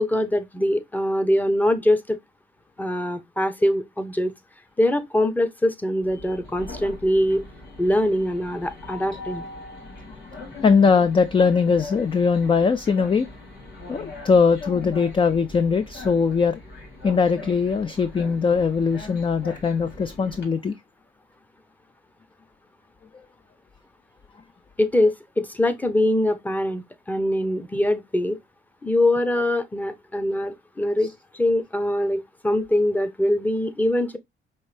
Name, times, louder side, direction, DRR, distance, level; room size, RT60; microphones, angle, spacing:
voice 1, 0.0-2.2 2.8-4.3 4.8-7.4 7.8-9.4 24.8-28.4 28.8-31.1 31.3-34.2, left 1 dB, 10° left, 0.8 m, -23 dB
Train, 6.0-20.4, left 3 dB, 60° left, 3.3 m, -41 dB
voice 2, 10.6-13.3 13.9-16.6 17.0-20.7, left 5 dB, 25° left, 0.4 m, -20 dB
5.4 x 2.6 x 3.2 m
cardioid pair, 90°, 20 cm